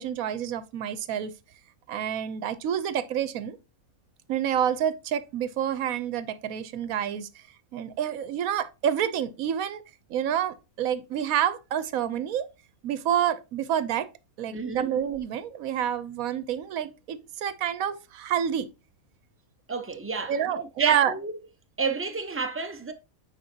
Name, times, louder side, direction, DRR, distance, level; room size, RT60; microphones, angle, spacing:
voice 1, 0.0-1.3 1.9-3.6 4.3-7.3 7.7-9.8 10.1-12.5 12.8-14.1 14.4-18.7 20.3-21.1, right 9 dB, 75° right, 1.2 m, -28 dB
voice 2, 14.5-14.9 19.7-21.3 21.8-22.9, right 4 dB, 15° right, 0.5 m, -31 dB
9.2 x 4.9 x 2.8 m
omnidirectional pair, 1.5 m